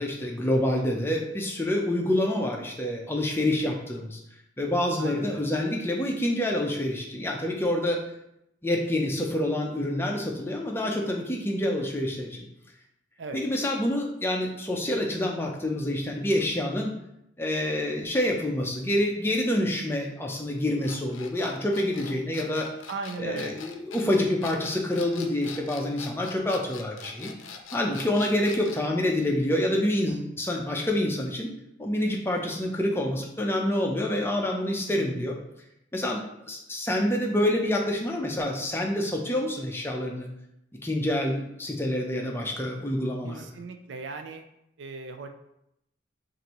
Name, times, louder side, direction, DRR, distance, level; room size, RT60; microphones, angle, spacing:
voice 1, 0.0-4.2 4.6-8.0 8.6-12.5 13.3-16.9 17.4-22.7 23.2-27.3 27.7-31.5 31.8-35.4 35.9-36.2 36.5-40.3 40.8-43.5, left 1 dB, 10° left, 0 dB, 0.6 m, -27 dB
voice 2, 5.0-5.4 13.2-13.4 22.9-23.6 34.9-35.2 43.2-44.4 44.8-45.3, right 4 dB, 70° right, 6 dB, 0.4 m, -38 dB
sound 1, 20.8-28.9, left 6 dB, 85° left, 0.5 m, -43 dB
6.4 x 2.6 x 3.0 m, 0.80 s
head